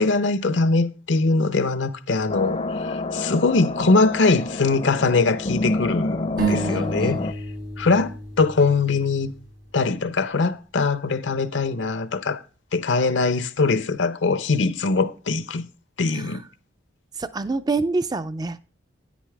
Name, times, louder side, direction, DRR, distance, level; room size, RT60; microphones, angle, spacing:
voice 1, 0.0-2.6 2.9-7.2 7.8-9.3 9.7-12.4 12.7-15.7 16.0-16.4, left 3 dB, 70° left, 0.7 m, -22 dB
sound 1, 2.3-7.3, left 2 dB, 30° left, 0.5 m, -28 dB
voice 2, 6.4-7.3 16.1-16.4 17.2-18.6, right 3 dB, 20° right, 0.4 m, -27 dB
sound 2, 6.4-10.0, right 2 dB, 80° right, 3.7 m, -31 dB
9.9 x 8.4 x 3.4 m
head